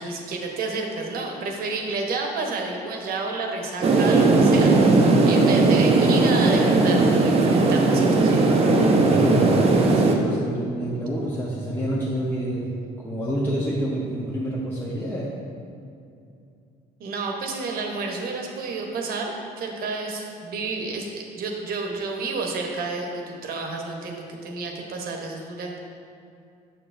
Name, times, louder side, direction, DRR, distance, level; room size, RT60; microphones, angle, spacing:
voice 1, 0.0-8.5 17.0-25.8, right 3 dB, 60° right, 1 dB, 1.0 m, -30 dB
sound 1, 3.8-10.2, right 3 dB, 35° right, 0.7 m, -18 dB
voice 2, 8.7-12.7 13.0-15.3, right 1 dB, 10° left, -7 dB, 0.9 m, -27 dB
7.0 x 6.9 x 2.6 m, 2.5 s
cardioid pair, 110°, 17 cm